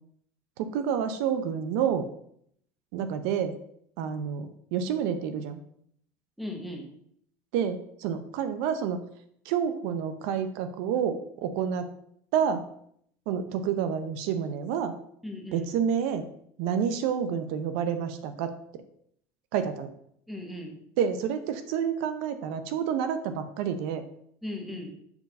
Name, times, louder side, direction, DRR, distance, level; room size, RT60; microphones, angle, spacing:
voice 1, 0.6-2.1 2.9-3.6 4.0-5.6 7.5-9.0 9.5-11.9 12.3-12.6 13.3-14.9 15.5-16.2 16.6-18.5 19.5-19.9 21.0-24.0, right 8 dB, 70° right, 9 dB, 0.7 m, -29 dB
voice 2, 6.4-6.9 15.2-15.7 20.3-20.8 24.4-24.9, left 1 dB, ahead, 2 dB, 1.3 m, -37 dB
7.2 x 4.0 x 5.3 m, 0.68 s
cardioid pair, 140°, 7 cm